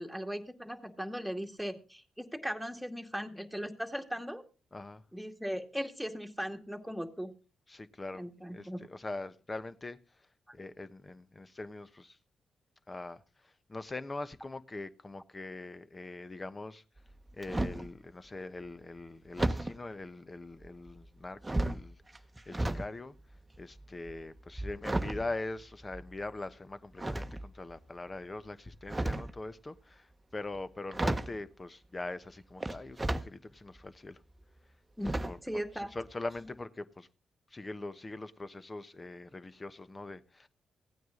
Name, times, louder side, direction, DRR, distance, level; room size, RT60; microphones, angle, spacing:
voice 1, 0.0-4.4 5.1-7.3 8.2-8.8 35.0-35.9, equal, ahead, 2.2 m, -38 dB
voice 2, 4.7-5.0 7.7-8.2 8.5-10.0 10.5-12.2 12.9-16.8 17.4-22.0 22.5-23.1 23.6-34.2 35.2-37.1 37.5-40.5, left 2 dB, 30° left, 1.1 m, -42 dB
sound 1, 17.0-17.9 19.4-19.8 20.6-21.1 21.4-22.9 23.2-26.2 27.0-27.7 28.7-29.4 30.5-30.6 30.9-31.4 32.6-33.3 33.8-33.9 35.0-35.5 35.8-36.0 36.3-36.4, right 1 dB, 20° right, 1.1 m, -34 dB
16.0 x 9.3 x 3.8 m
hypercardioid pair, 40°, 0 cm